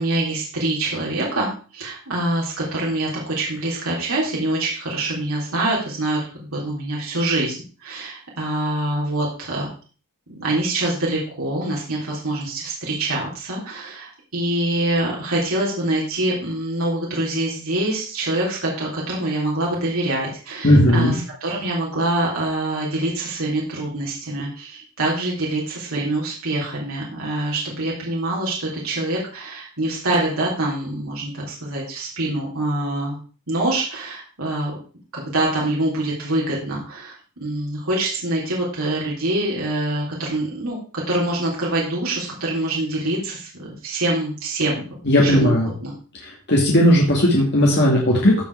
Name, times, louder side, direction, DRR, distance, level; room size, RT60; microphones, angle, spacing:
voice 1, 0.0-9.7 10.3-33.2 33.5-34.8 35.1-37.2 37.4-40.8 41.1-45.9, right 1 dB, 75° right, -4 dB, 3.6 m, -25 dB
voice 2, 20.6-21.2 45.1-45.7 46.2-48.4, left 1 dB, 55° left, -3 dB, 2.6 m, -16 dB
15.5 x 5.5 x 4.8 m, 0.38 s
head